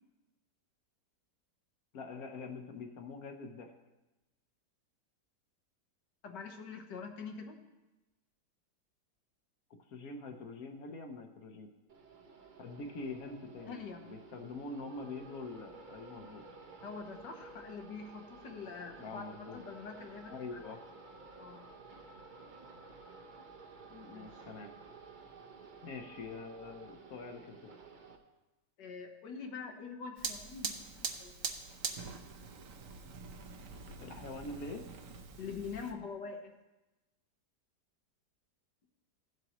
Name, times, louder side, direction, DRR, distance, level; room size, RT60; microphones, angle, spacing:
voice 1, 1.9-3.7 9.9-11.7 12.6-16.4 19.0-19.6 20.3-20.8 23.9-24.7 25.8-27.8 34.0-34.8, left 3 dB, 65° left, 5 dB, 1.2 m, -45 dB
voice 2, 6.2-7.6 13.7-14.1 16.8-20.6 21.4-21.7 24.1-24.4 28.8-31.5 35.4-36.5, left 5 dB, 85° left, 4 dB, 1.7 m, -45 dB
sound 1, 11.9-28.2, right 4 dB, 40° right, 0.8 m, -53 dB
Fire, 30.2-35.9, right 5 dB, 55° right, 1.1 m, -43 dB
16.0 x 7.7 x 3.0 m, 1.0 s
omnidirectional pair, 1.8 m